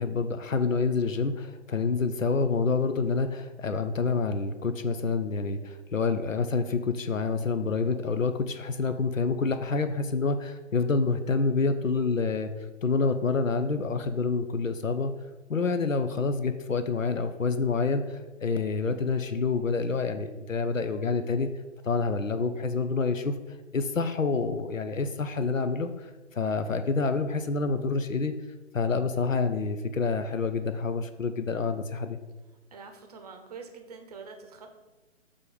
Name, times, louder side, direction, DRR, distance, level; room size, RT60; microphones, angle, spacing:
voice 1, 0.0-12.5 12.8-15.1 15.5-21.5 21.8-23.3 23.7-28.3 28.7-32.2, left 4 dB, 90° left, 9 dB, 0.6 m, -27 dB
voice 2, 32.7-34.7, right 5 dB, 30° right, 5 dB, 0.7 m, -45 dB
6.6 x 3.5 x 5.3 m, 1.1 s
figure-of-eight pair, 135°, 38 cm